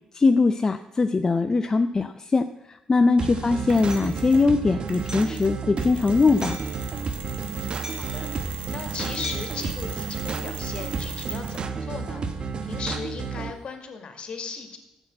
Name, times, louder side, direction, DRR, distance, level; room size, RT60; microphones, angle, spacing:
voice 1, 0.1-6.6, left 3 dB, 25° left, 7 dB, 0.6 m, -21 dB
sound 1, 3.2-13.5, right 5 dB, 45° right, 1.1 m, -31 dB
Mechanisms, 3.7-4.5 4.9-11.7, right 7 dB, 70° right, 2.1 m, -40 dB
Hammer, 3.9-4.1 5.1-5.4 6.4-6.8 7.8-8.2 9.2-9.6, left 1 dB, 20° right, 2.5 m, -40 dB
voice 2, 7.5-14.8, left 5 dB, 50° left, 6 dB, 2.2 m, -37 dB
13.0 x 8.1 x 7.7 m, 0.95 s
cardioid pair, 110°, 2 cm